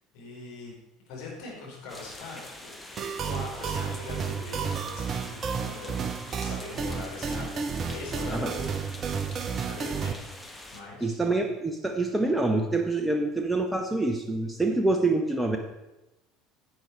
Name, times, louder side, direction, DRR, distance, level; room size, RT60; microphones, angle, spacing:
voice 1, 0.1-0.8 1.1-2.8 3.2-6.1 6.4-8.8 9.7-10.3 10.7-11.2, left 3 dB, 55° left, -3 dB, 4.1 m, -41 dB
sound 1, 1.9-10.8, left 1 dB, 10° left, 1.4 m, -45 dB
sound 2, 3.0-10.1, right 6 dB, 35° right, 0.8 m, -32 dB
voice 2, 11.0-15.6, right 2 dB, 10° right, 4 dB, 0.9 m, -26 dB
10.5 x 8.0 x 4.6 m, 0.95 s
figure-of-eight pair, 65°, 0 cm